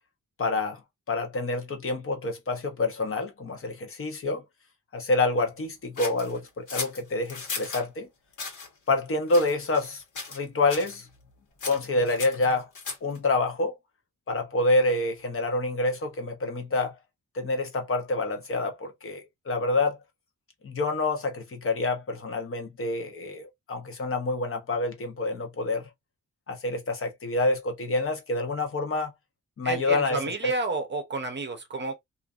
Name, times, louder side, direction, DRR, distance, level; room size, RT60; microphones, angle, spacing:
voice 1, 0.4-0.8 1.1-4.4 4.9-8.1 8.9-10.0 10.3-11.1 11.6-12.7 13.0-13.7 14.3-17.0 17.3-20.0 20.6-25.8 26.5-29.1 29.6-30.2 30.4-30.5, left 2 dB, 45° left, 0.8 m, -27 dB
sound 1, 6.0-7.9 8.3-8.7 9.3-9.9 10.1-10.4 10.7-10.9 11.6-13.2, left 4 dB, 70° left, 1.3 m, -36 dB
voice 2, 29.6-32.0, right 3 dB, 35° right, 0.7 m, -31 dB
2.5 x 2.5 x 2.4 m
wide cardioid pair, 180°, 31 cm